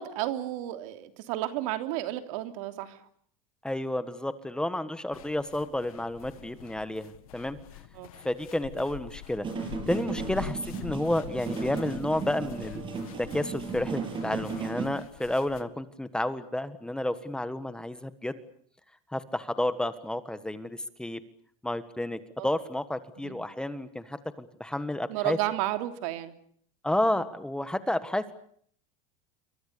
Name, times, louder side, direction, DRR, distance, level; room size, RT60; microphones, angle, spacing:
voice 1, 0.0-3.0 7.9-8.1 10.3-10.5 22.4-22.5 23.2-23.4 25.1-26.3, right 14 dB, 70° right, 8 dB, 3.3 m, -32 dB
voice 2, 3.6-7.6 8.2-9.5 9.9-12.8 13.2-18.4 19.1-21.2 21.6-25.4 26.8-28.3, left 1 dB, 5° left, 12 dB, 1.5 m, -31 dB
sound 1, 5.1-15.6, left 14 dB, 90° left, 1.9 m, -46 dB
sound 2, 9.4-14.9, right 4 dB, 30° right, 7.8 m, -35 dB
28.0 x 24.5 x 6.9 m, 0.62 s
supercardioid pair, 135°, 18 cm